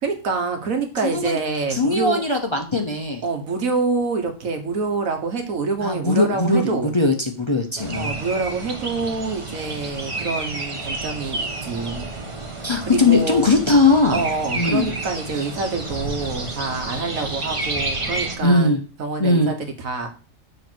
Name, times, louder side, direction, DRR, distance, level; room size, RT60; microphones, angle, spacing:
voice 1, 0.0-2.2 3.2-6.9 7.9-12.1 12.8-13.5 14.1-20.1, right 4 dB, 85° right, 5 dB, 1.7 m, -26 dB
voice 2, 1.0-1.4 1.7-3.2 5.8-8.1 12.6-14.3 14.6-14.9 18.4-18.8 19.2-19.5, left 2 dB, 30° left, 2 dB, 0.6 m, -19 dB
sound 1, 7.8-18.4, right 2 dB, 25° right, 1.0 m, -30 dB
7.0 x 3.3 x 6.1 m, 0.36 s
omnidirectional pair, 1.4 m